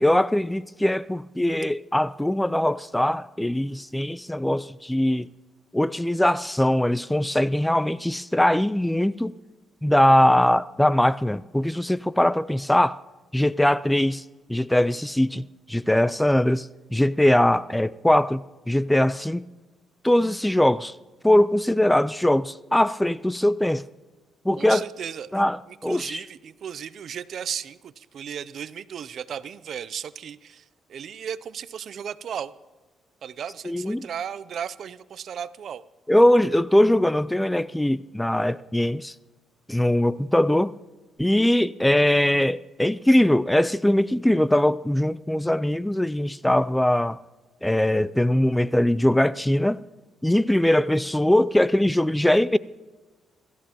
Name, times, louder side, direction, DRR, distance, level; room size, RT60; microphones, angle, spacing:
voice 1, 0.0-5.3 5.7-9.3 9.8-13.0 13.3-14.2 14.5-15.4 15.7-19.4 20.0-20.9 21.2-23.8 24.5-24.8 25.3-25.6 25.8-26.2 33.6-34.1 36.1-39.1 39.7-40.7 41.2-47.2 47.6-49.8 50.2-52.6, left 1 dB, 5° left, 0.3 m, -21 dB
voice 2, 24.6-32.5 33.2-35.8, right 8 dB, 60° right, 0.5 m, -35 dB
24.0 x 14.0 x 3.0 m
cardioid pair, 90°, 0 cm